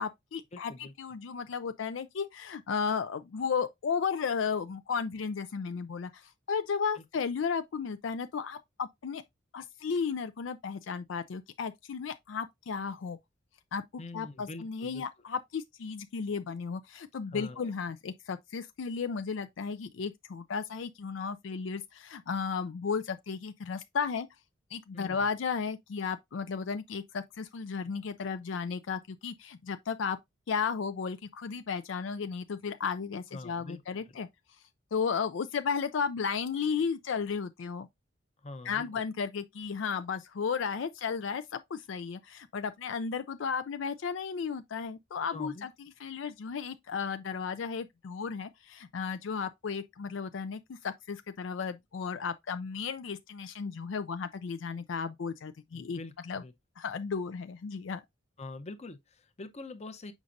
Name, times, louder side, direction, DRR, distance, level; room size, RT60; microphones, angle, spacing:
voice 1, 0.0-9.2 9.5-13.2 13.7-13.8 14.1-24.3 24.7-30.2 30.5-34.3 34.9-37.9 38.6-45.7 46.0-56.0 56.3-56.4 56.8-58.0, left 6 dB, 70° left, 0.4 m, -34 dB
voice 2, 0.5-0.9 6.9-7.0 14.0-15.0 17.3-17.7 24.9-25.3 33.3-34.2 38.4-38.9 45.3-45.7 55.7-56.5 58.4-60.1, left 2 dB, 35° left, 0.7 m, -44 dB
7.2 x 5.2 x 2.5 m
head